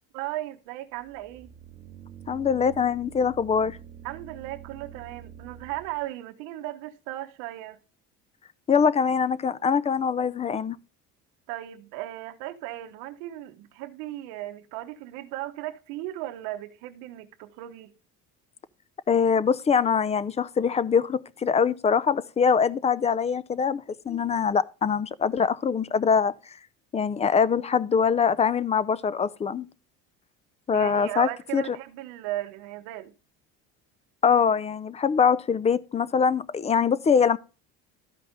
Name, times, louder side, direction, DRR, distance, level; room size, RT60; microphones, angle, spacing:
voice 1, 0.1-1.5 4.0-7.8 11.5-17.9 30.7-33.1, right 15 dB, 90° right, 0.9 m, -36 dB
sound 1, 1.0-6.1, right 9 dB, 30° right, 0.8 m, -46 dB
voice 2, 2.3-3.8 8.7-10.8 19.1-26.3 26.9-29.7 30.7-31.6 34.2-37.4, left 6 dB, 20° left, 0.4 m, -23 dB
13.0 x 5.2 x 3.9 m
cardioid pair, 125°, 33 cm